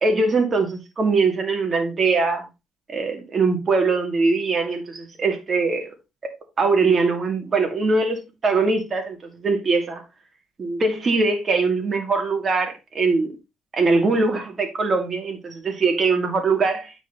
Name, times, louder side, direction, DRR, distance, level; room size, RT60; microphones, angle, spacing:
voice 1, 0.0-2.5 2.9-5.9 6.2-6.3 6.6-9.2 9.4-10.0 10.6-13.3 13.7-16.9, right 3 dB, 45° right, 2.6 m, -22 dB
9.3 x 5.0 x 4.0 m
cardioid pair, 90°, 0 cm